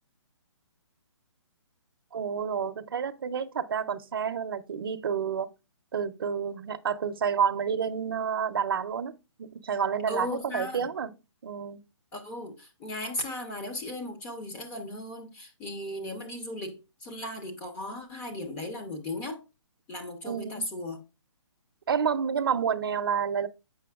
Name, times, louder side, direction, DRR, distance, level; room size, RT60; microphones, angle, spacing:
voice 1, 2.1-5.5 5.9-11.1 11.4-11.8 20.2-20.7 21.9-23.5, right 7 dB, 50° right, 0.5 m, -29 dB
voice 2, 10.1-10.9 12.1-19.4 19.9-21.0, left 1 dB, 10° left, 0.6 m, -36 dB
7.6 x 5.7 x 2.3 m
hypercardioid pair, 170°, 16 cm